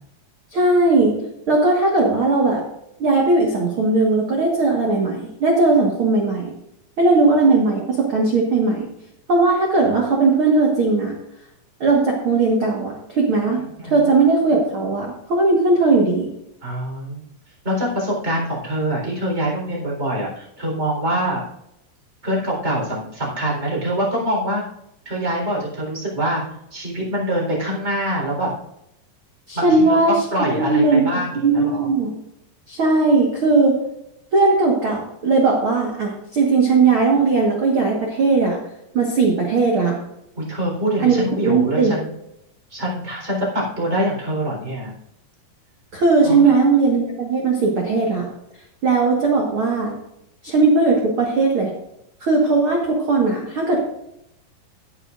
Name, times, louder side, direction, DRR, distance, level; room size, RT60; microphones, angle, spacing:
voice 1, 0.5-1.1 1.5-2.6 3.0-6.5 7.0-8.9 9.3-11.1 11.8-16.3 29.5-30.2 30.6-31.0 31.3-32.1 32.7-33.8 34.3-38.6 38.9-40.0 41.0-41.9 45.9-48.3 48.8-49.9 50.4-51.7 52.2-53.8, right 3 dB, 90° right, -1 dB, 1.1 m, -18 dB
voice 2, 13.5-14.1 16.6-17.3 17.6-21.4 22.2-24.6 25.1-26.4 26.7-28.5 29.5-31.9 40.4-42.1 42.7-44.9 46.2-46.6, right 1 dB, 15° right, -3 dB, 3.8 m, -24 dB
16.5 x 8.8 x 2.5 m, 0.81 s
omnidirectional pair, 5.0 m